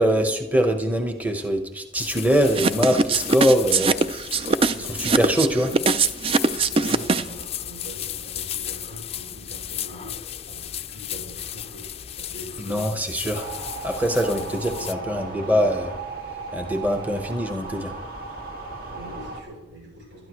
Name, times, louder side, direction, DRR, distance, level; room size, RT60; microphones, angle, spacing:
voice 1, 0.0-3.9 4.8-5.7 12.6-15.9 16.5-17.9, equal, 10° right, 4 dB, 1.1 m, -23 dB
sound 1, 1.9-14.9, left 10 dB, 30° left, 0.4 m, -35 dB
sound 2, 2.5-7.4, right 4 dB, 30° right, 0.4 m, -21 dB
voice 2, 4.7-5.9 6.5-11.9 12.2-12.9 14.3-15.6 18.8-20.3, equal, 75° right, -1 dB, 6.7 m, -42 dB
sound 3, 13.3-19.4, right 3 dB, 50° right, 2.1 m, -36 dB
27.5 x 12.5 x 3.1 m, 1.0 s
head